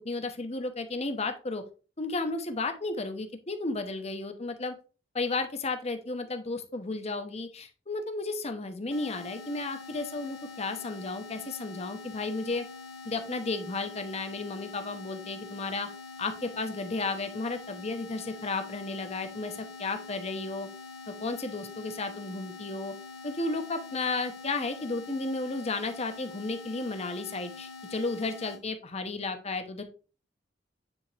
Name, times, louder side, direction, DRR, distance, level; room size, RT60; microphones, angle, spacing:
voice 1, 0.0-1.6 2.0-4.8 5.1-12.7 13.0-15.9 16.2-20.7 21.2-22.9 23.2-29.8, left 3 dB, 35° left, 8 dB, 0.9 m, -33 dB
sound 1, 8.9-28.6, left 4 dB, 80° left, 1.1 m, -45 dB
9.8 x 3.5 x 3.3 m, 0.36 s
head